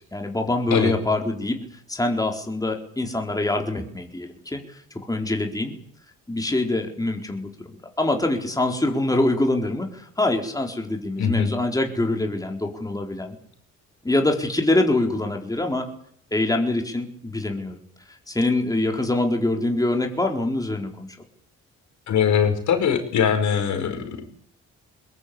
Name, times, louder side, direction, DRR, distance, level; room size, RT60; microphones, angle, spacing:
voice 1, 0.1-1.6 1.9-4.6 5.1-5.7 6.3-7.5 8.0-13.4 14.0-15.9 16.3-17.8 18.3-21.1, left 2 dB, 10° left, 3 dB, 4.3 m, -24 dB
voice 2, 11.2-11.5 22.1-24.4, left 7 dB, 70° left, 7 dB, 5.4 m, -22 dB
21.5 x 21.5 x 8.6 m, 0.65 s
cardioid pair, 90°, 30 cm